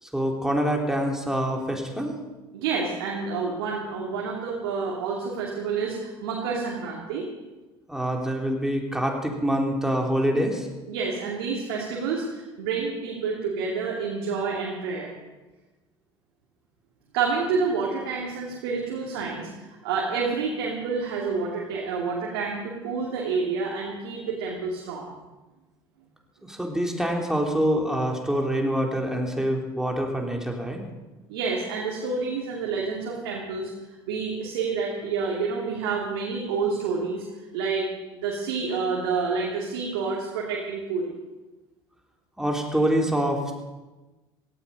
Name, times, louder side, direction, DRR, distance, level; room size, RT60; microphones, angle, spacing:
voice 1, 0.0-2.2 7.9-10.7 26.4-30.8 42.4-43.5, equal, 5° right, 1 dB, 3.9 m, -25 dB
voice 2, 2.5-7.3 10.9-15.1 17.1-25.2 31.3-33.7 34.1-37.3 37.5-37.9 38.2-41.1, right 5 dB, 75° right, -3 dB, 2.8 m, -28 dB
17.0 x 14.5 x 5.4 m, 1.1 s
hypercardioid pair, 60°, 13 cm